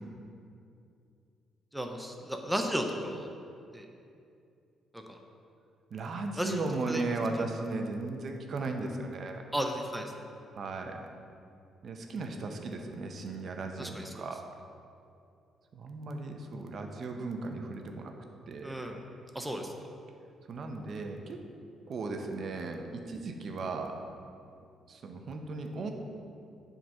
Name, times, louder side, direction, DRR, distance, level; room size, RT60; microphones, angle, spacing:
voice 1, 1.7-3.3 3.7-3.9 4.9-5.2 6.4-7.0 9.5-10.0 13.8-14.1 18.6-19.0 19.3-19.7, equal, 5° right, 3 dB, 0.7 m, -34 dB
voice 2, 5.9-9.4 10.5-11.0 11.8-14.4 15.7-18.1 18.5-18.7 20.5-21.4 21.9-24.0 24.9-25.9, right 3 dB, 55° right, 4 dB, 0.7 m, -36 dB
7.6 x 3.9 x 5.5 m, 2.5 s
cardioid pair, 90°, 0 cm